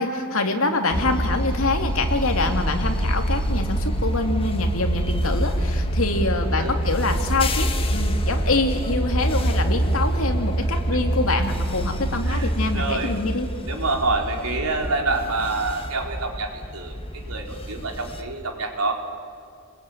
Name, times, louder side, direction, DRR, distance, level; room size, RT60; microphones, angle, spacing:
voice 1, 0.0-13.5, left 2 dB, 65° left, 4 dB, 2.7 m, -25 dB
sound 1, 0.9-18.2, right 1 dB, 25° left, 1.7 m, -25 dB
voice 2, 12.3-13.2 13.6-18.9, right 3 dB, 85° right, 2 dB, 3.8 m, -27 dB
28.5 x 21.0 x 9.4 m, 2.5 s
head